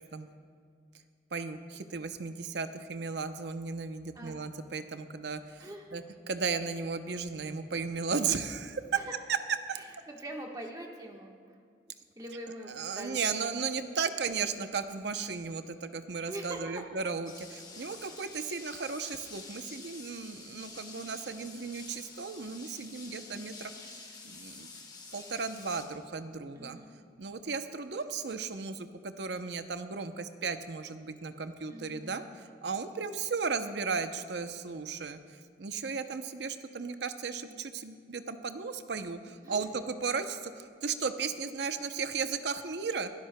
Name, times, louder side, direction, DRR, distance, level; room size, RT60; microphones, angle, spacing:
voice 1, 1.3-8.8 9.7-9.8 12.7-24.7 25.1-26.8 27.2-35.2 35.6-43.1, right 5 dB, 70° right, 9 dB, 0.7 m, -35 dB
voice 2, 5.6-6.0 8.9-9.1 9.7-11.3 12.1-13.5 16.3-16.9 20.8-21.1 23.1-23.4 26.5-26.9 31.7-32.2 37.4-37.6 39.2-39.8, right 1 dB, 20° right, 0 dB, 1.2 m, -44 dB
sound 1, 17.3-25.9, left 4 dB, 25° left, 1.3 m, -48 dB
23.0 x 12.5 x 2.2 m, 2.2 s
head